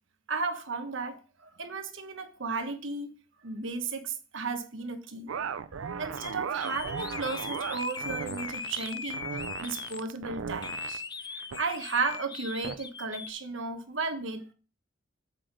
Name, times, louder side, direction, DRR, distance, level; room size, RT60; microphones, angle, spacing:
voice 1, 0.3-3.1 3.4-5.3 6.0-14.5, right 4 dB, 70° right, 1.2 m, -34 dB
sound 1, 5.3-11.0 11.4-11.6 12.1-12.2 12.6-12.8, right 6 dB, 85° right, 0.5 m, -37 dB
sound 2, 6.2-6.3 6.6-10.0 10.6-13.3, left 5 dB, 20° left, 0.4 m, -39 dB
7.7 x 5.0 x 5.1 m
head